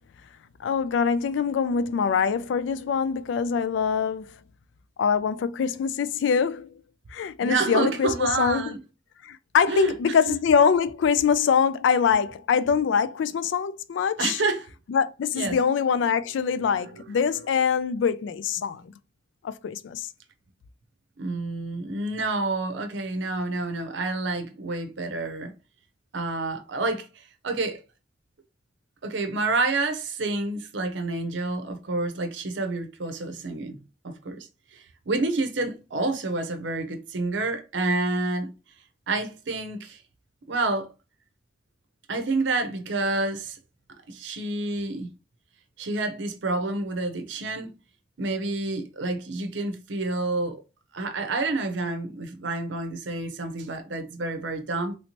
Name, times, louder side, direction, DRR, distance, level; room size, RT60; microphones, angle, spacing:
voice 1, 0.6-4.4 5.0-6.7 7.1-8.7 9.2-14.4 14.9-18.9 19.4-20.1, left 6 dB, 85° left, 0.3 m, -24 dB
voice 2, 7.4-8.8 9.7-9.9 10.3-10.4 14.2-14.7 15.3-15.6 21.2-25.5 26.1-27.1 27.4-27.8 29.0-38.5 39.1-40.0 40.5-40.9 42.1-43.6 44.1-45.1 45.8-47.8 48.2-50.6 50.9-55.0, right 3 dB, 80° right, 0.7 m, -28 dB
3.1 x 2.8 x 2.9 m
head